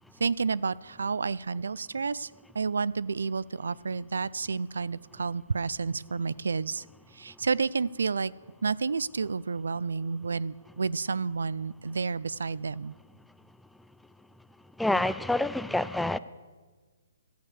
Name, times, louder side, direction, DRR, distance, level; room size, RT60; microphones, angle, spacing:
voice 1, 0.2-6.8 7.1-8.3 8.6-12.9, right 5 dB, 80° right, 0.3 m, -30 dB
voice 2, 14.8-16.2, left 1 dB, ahead, 0.3 m, -27 dB
13.5 x 6.7 x 7.1 m
hypercardioid pair, 135°, 0 cm